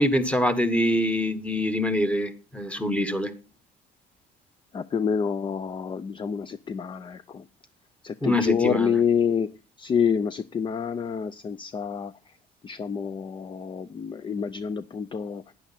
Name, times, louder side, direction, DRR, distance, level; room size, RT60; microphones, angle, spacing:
voice 1, 0.0-3.3 8.2-8.9, equal, 5° left, 1.4 m, -24 dB
voice 2, 4.7-7.5 8.0-12.3 12.6-15.4, left 7 dB, 30° left, 0.5 m, -27 dB
11.5 x 10.0 x 4.2 m
cardioid pair, 110°, 17 cm